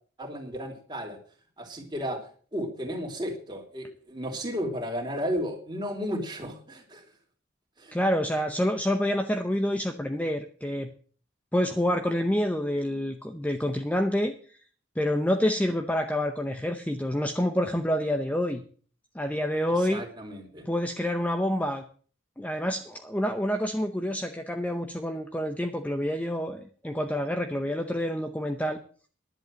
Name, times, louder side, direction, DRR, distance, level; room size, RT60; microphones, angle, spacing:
voice 1, 0.2-1.2 1.6-2.2 2.5-7.0 7.8-7.9 19.9-20.7, equal, 20° right, 1 dB, 3.1 m, -33 dB
voice 2, 7.9-10.9 11.5-14.3 15.0-18.6 19.1-20.0 20.7-21.8 22.4-28.8, equal, 5° left, 6 dB, 0.7 m, -27 dB
11.0 x 7.9 x 7.6 m, 0.43 s
head